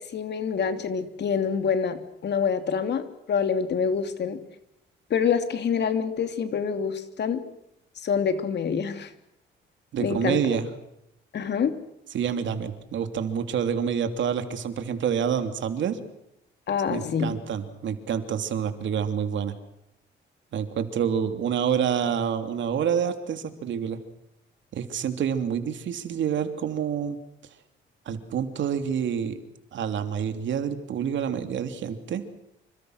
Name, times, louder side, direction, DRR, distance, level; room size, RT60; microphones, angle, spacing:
voice 1, 0.0-4.4 5.1-7.4 8.0-9.1 10.0-10.4 11.3-11.7 16.7-17.3, left 6 dB, 60° left, 8 dB, 3.0 m, -26 dB
voice 2, 9.9-10.7 12.1-16.0 16.9-19.5 20.5-24.0 24.7-27.2 28.0-29.4 29.7-32.2, right 8 dB, 70° right, 8 dB, 3.0 m, -27 dB
27.5 x 25.0 x 6.5 m, 0.81 s
cardioid pair, 90°, 20 cm